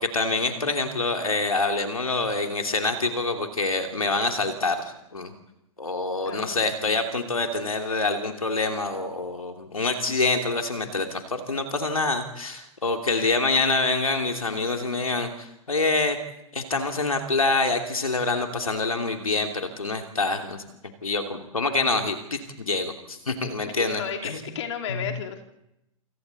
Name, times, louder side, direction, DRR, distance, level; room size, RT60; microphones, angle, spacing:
voice 1, 0.0-4.8 5.1-5.3 5.8-16.2 16.5-20.6 21.0-24.4 24.9-25.1, left 3 dB, 80° left, 4 dB, 2.8 m, -26 dB
voice 2, 6.2-6.9 13.1-13.4 23.7-25.4, left 8 dB, 55° left, 4 dB, 3.1 m, -34 dB
28.5 x 27.5 x 4.2 m, 0.86 s
figure-of-eight pair, 105°, 18 cm